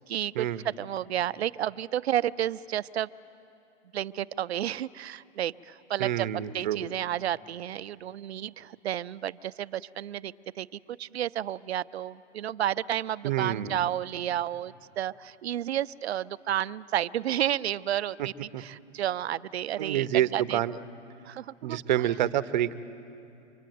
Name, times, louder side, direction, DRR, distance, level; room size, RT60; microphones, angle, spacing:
voice 1, 0.1-3.1 3.9-6.3 6.5-20.6 21.3-22.0, right 11 dB, 65° right, 15 dB, 0.7 m, -31 dB
voice 2, 6.0-6.8 13.2-13.9 18.2-18.3 18.5-18.6 19.8-20.7 21.6-22.7, right 12 dB, 40° right, 12 dB, 0.9 m, -27 dB
26.0 x 24.0 x 9.3 m, 2.8 s
hypercardioid pair, 160°, 35 cm